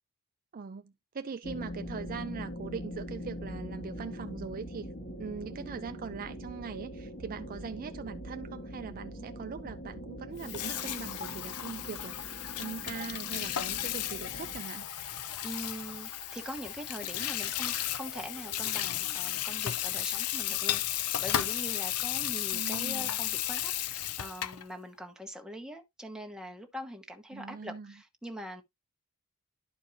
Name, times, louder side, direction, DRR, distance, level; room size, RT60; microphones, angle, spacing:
voice 1, 0.5-4.9 5.2-12.3 12.6-14.8 22.5-23.2 27.3-27.9, right 5 dB, 40° right, 0.4 m, -41 dB
sound 1, 1.4-14.6, equal, 40° left, 1.6 m, -43 dB
Water tap faucet / Sink (filling or washing), 10.3-24.6, left 12 dB, 85° left, 0.6 m, -34 dB
sound 2, 14.3-19.8, right 5 dB, 80° right, 0.8 m, -55 dB
voice 2, 15.4-28.6, equal, 5° right, 1.2 m, -43 dB
12.0 x 4.6 x 2.7 m
head